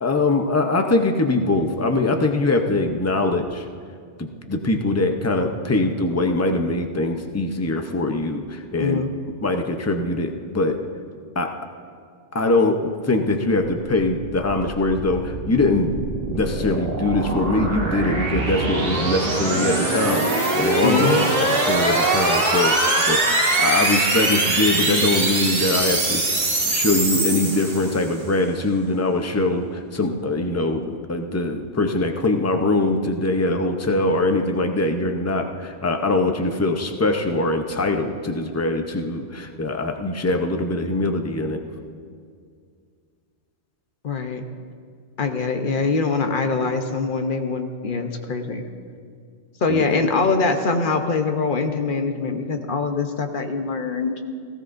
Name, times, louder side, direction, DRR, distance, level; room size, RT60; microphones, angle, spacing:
voice 1, 0.0-3.7 4.2-9.0 9.4-10.8 11.3-11.6 12.3-15.9 16.3-26.2 26.7-41.6 49.7-50.0, left 2 dB, 15° left, 5 dB, 0.6 m, -22 dB
voice 2, 8.8-9.1 20.8-21.3 44.0-44.4 45.2-48.7 49.6-54.1, left 4 dB, 50° left, 6 dB, 0.9 m, -23 dB
sound 1, 14.1-28.2, right 2 dB, 55° right, 1.8 m, -23 dB
18.0 x 15.5 x 2.6 m, 2.2 s
omnidirectional pair, 1.2 m